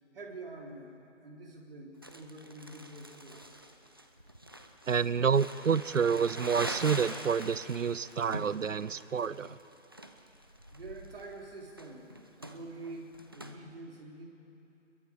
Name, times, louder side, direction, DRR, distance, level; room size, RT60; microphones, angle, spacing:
voice 1, 0.1-0.9 1.2-3.4 10.7-12.1 12.4-14.3, right 2 dB, 50° right, 0 dB, 3.5 m, -46 dB
Crumpling crinkling, 2.0-13.5, right 1 dB, 20° right, 0.5 m, -44 dB
voice 2, 4.9-9.6, right 6 dB, 80° right, 18 dB, 0.7 m, -28 dB
26.5 x 22.0 x 5.1 m, 2.8 s
figure-of-eight pair, 150°, 38 cm